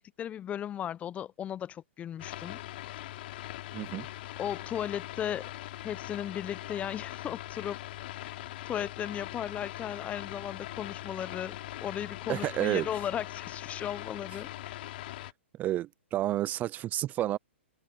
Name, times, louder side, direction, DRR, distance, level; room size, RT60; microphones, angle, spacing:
voice 1, 0.0-2.6 4.4-5.5 5.8-7.8 8.1-8.3 8.7-14.8, left 10 dB, 20° left, 0.8 m, -36 dB
sound 1, 2.2-15.3, left 15 dB, 50° left, 3.5 m, -41 dB
voice 2, 3.7-4.1 12.3-12.9 15.6-17.4, right 14 dB, 25° right, 0.5 m, -30 dB
hypercardioid pair, 125°, 7 cm